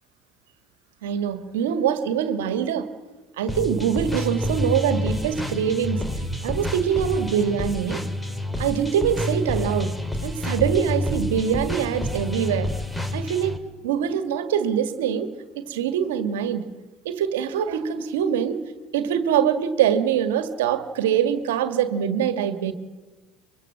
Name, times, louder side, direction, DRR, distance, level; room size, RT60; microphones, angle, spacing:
voice 1, 1.0-2.9 3.4-6.0 6.4-8.1 8.6-10.0 10.2-12.8 13.1-15.3 15.5-16.7 17.0-18.6 18.9-22.7, right 8 dB, 85° right, 10 dB, 1.6 m, -24 dB
sound 1, 3.5-13.6, left 1 dB, 10° left, 2.6 m, -28 dB
23.5 x 23.5 x 7.6 m, 1.2 s
hypercardioid pair, 75°, 0 cm